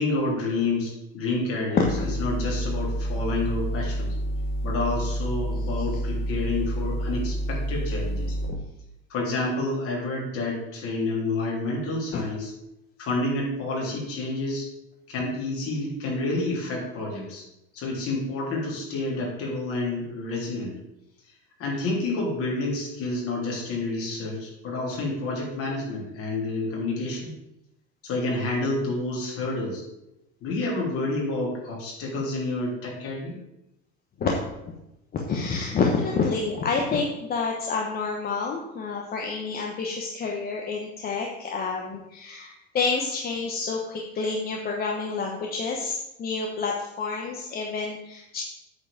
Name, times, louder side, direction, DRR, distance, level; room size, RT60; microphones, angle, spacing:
voice 1, 0.0-4.2 4.6-8.4 9.1-12.5 13.0-14.7 15.1-17.4 17.7-20.7 21.6-27.3 28.0-29.8 30.4-33.4, left 2 dB, 45° left, -3 dB, 3.7 m, -29 dB
sound 1, 1.8-8.5, equal, 70° left, 2.8 m, -29 dB
voice 2, 35.1-48.4, left 4 dB, 30° left, 0 dB, 1.1 m, -28 dB
8.7 x 4.8 x 7.5 m, 0.87 s
cardioid pair, 150°, 31 cm